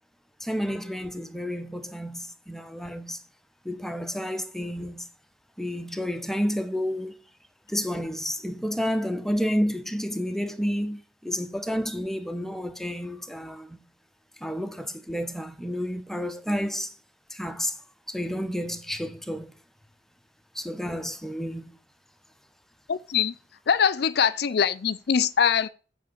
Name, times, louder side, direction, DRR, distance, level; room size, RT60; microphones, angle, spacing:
voice 1, 0.4-3.2 3.6-5.1 5.6-7.1 7.7-13.8 14.4-16.9 17.3-17.8 18.1-19.5 20.5-21.8, equal, ahead, 0.9 m, -30 dB
voice 2, 22.9-23.3 23.7-25.7, left 7 dB, 60° left, 0.4 m, -23 dB
9.3 x 3.7 x 7.1 m
head